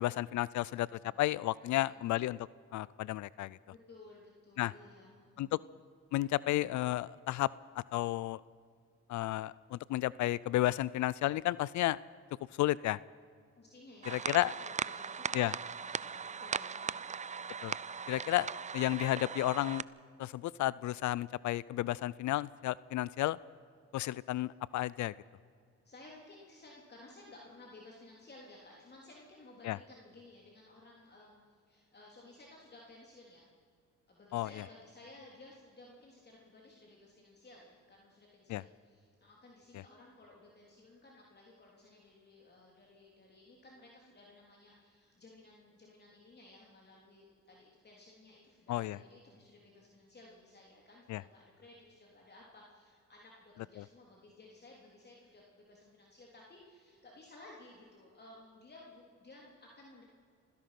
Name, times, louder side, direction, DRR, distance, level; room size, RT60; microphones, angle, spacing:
voice 1, 0.0-0.9 1.2-2.4 2.7-3.6 4.6-4.7 5.4-5.5 6.1-7.5 7.8-8.4 9.1-12.0 12.6-13.0 14.1-14.5 15.3-15.5 17.6-17.7 18.1-18.5 18.7-19.8 20.2-23.4 23.9-25.1 29.6-29.8 34.3-34.5 38.5-38.6 48.7-49.0 51.1-51.2, left 15 dB, 70° left, 21 dB, 0.5 m, -32 dB
voice 2, 0.6-1.2 1.6-2.0 3.7-5.6 13.6-17.5 25.8-33.5 34.1-60.0, left 2 dB, 35° left, -2 dB, 3.5 m, -57 dB
sound 1, 14.0-19.8, right 6 dB, 25° right, 0.5 m, -39 dB
27.0 x 16.5 x 5.9 m, 2.3 s
cardioid pair, 90°, 30 cm